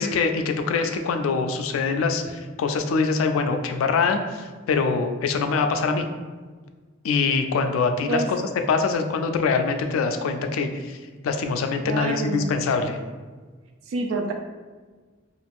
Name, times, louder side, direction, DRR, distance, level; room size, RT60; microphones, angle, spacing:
voice 1, 0.0-6.1 7.0-8.4 8.7-11.0 11.2-13.0, left 4 dB, 85° left, 6 dB, 0.3 m, -24 dB
voice 2, 11.8-12.6 13.9-14.3, right 3 dB, 80° right, 4 dB, 0.3 m, -27 dB
2.4 x 2.4 x 3.4 m, 1.4 s
head